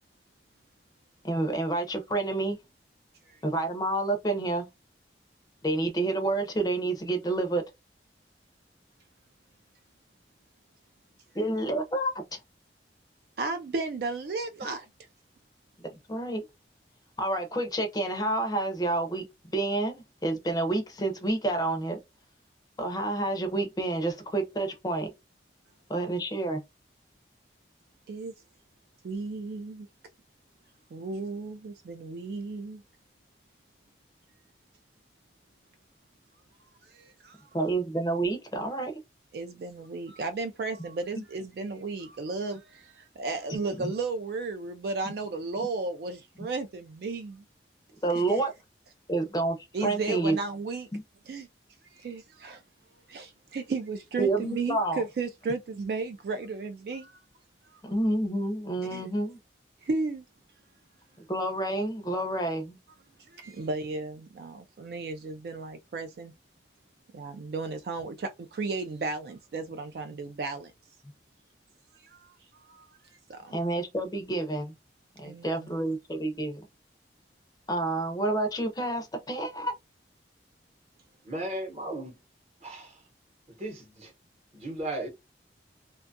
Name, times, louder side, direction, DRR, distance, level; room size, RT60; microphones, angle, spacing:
voice 1, 1.2-2.6 3.4-4.7 5.6-7.6 11.3-12.1 16.1-16.4 17.2-19.3 19.5-22.0 22.8-25.1 25.9-26.6 37.5-38.9 43.8-43.9 48.0-48.5 49.1-50.4 50.9-51.0 54.2-55.0 57.8-59.4 61.3-62.8 73.5-74.7 75.2-76.6 77.7-79.7, right 2 dB, 20° left, 0.5 m, -29 dB
voice 2, 13.4-14.9 28.1-28.3 29.0-29.9 30.9-32.8 36.6-37.5 39.3-47.4 48.1-48.4 49.7-50.9 51.3-51.5 51.8-52.6 53.1-57.2 57.7-57.8 58.9-59.1 59.8-60.2 63.3-66.3 67.1-70.7 71.9-72.9 73.3-73.6 75.2-75.7, right 3 dB, 55° right, 0.3 m, -34 dB
voice 3, 81.2-82.2 82.6-83.0 83.5-84.1 84.5-85.1, right 1 dB, 35° right, 0.8 m, -36 dB
2.6 x 2.3 x 2.5 m
head